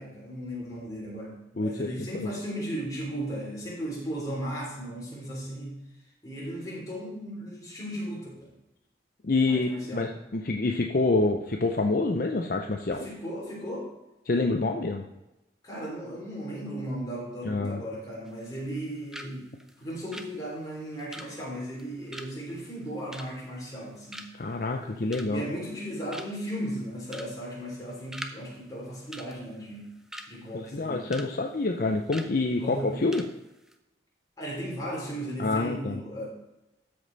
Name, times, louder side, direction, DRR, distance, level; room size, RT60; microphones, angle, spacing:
voice 1, 0.0-5.8 6.2-8.5 9.4-10.1 13.0-13.9 15.6-19.5 19.8-24.3 24.8-29.9 30.3-31.1 32.6-33.1 34.4-36.3, right 1 dB, 20° left, -5 dB, 3.6 m, -36 dB
voice 2, 1.6-1.9 2.1-2.3 9.2-10.1 10.3-13.1 14.3-15.0 17.4-17.8 24.4-25.5 30.5-33.2 35.4-36.0, left 3 dB, 50° left, 3 dB, 0.6 m, -27 dB
sound 1, 18.3-18.9 19.1-19.3 19.6-23.8 24.1-24.5 24.9-25.5 25.8-25.9 26.1-26.5 27.1-27.3 27.6-28.4 28.6-28.8 29.1-30.3 30.7-31.3 31.6-31.7 32.1-32.3 32.7-32.8 33.1-33.3 33.6-33.7, equal, 5° right, 0.6 m, -42 dB
13.0 x 5.2 x 4.0 m, 0.96 s
head